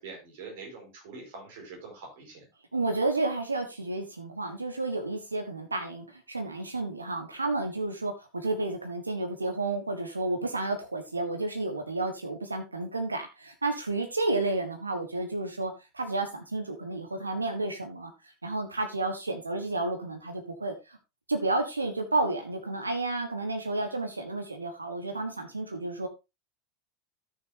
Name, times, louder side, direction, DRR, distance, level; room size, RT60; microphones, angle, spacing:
voice 1, 0.0-2.5, right 4 dB, 60° right, 0 dB, 5.1 m, -44 dB
voice 2, 2.7-18.1 18.4-21.0 21.3-26.1, right 2 dB, 85° right, 6 dB, 1.4 m, -31 dB
13.5 x 6.8 x 2.8 m, 0.25 s
figure-of-eight pair, 80°, 0 cm